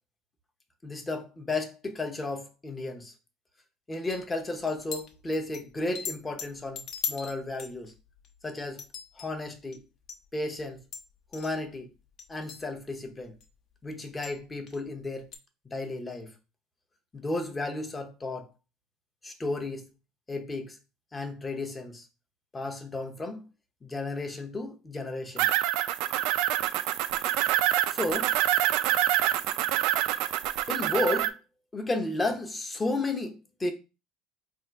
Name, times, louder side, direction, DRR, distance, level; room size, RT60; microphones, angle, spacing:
voice 1, 0.8-3.1 3.9-7.9 8.4-8.8 9.2-9.8 10.3-10.8 11.3-11.9 12.3-13.3 13.8-15.3 15.6-16.3 17.1-18.5 19.2-19.9 20.3-20.8 21.1-22.1 22.5-23.4 23.8-25.5 27.9-28.3 30.7-31.4 31.7-33.7, left 2 dB, 15° left, 0.7 m, -33 dB
sound 1, 4.1-4.3 4.7-5.6 6.0-8.4 8.8-9.3 9.7-9.8 10.1-10.2 10.8-11.1 11.3-11.6 12.2-12.6 13.4-13.5 14.2-14.4 14.7-14.8 15.3-15.4, left 7 dB, 45° left, 0.8 m, -38 dB
sound 2, 25.4-31.3, right 13 dB, 70° right, 0.3 m, -26 dB
3.5 x 2.4 x 4.5 m
cardioid pair, 140°, 0 cm